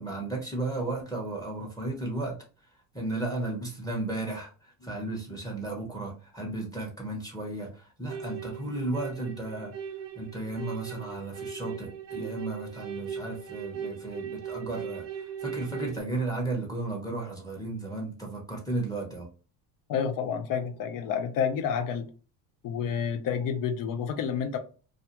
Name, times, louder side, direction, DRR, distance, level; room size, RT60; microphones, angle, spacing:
voice 1, 0.0-2.4 2.9-9.7 10.1-19.3, right 2 dB, 10° left, 0.8 m, -34 dB
sound 1, 8.1-16.0, right 7 dB, 80° right, 0.7 m, -39 dB
voice 2, 19.9-22.1 22.6-24.6, left 7 dB, 55° left, 0.6 m, -29 dB
2.4 x 2.3 x 2.8 m
supercardioid pair, 110°, 40 cm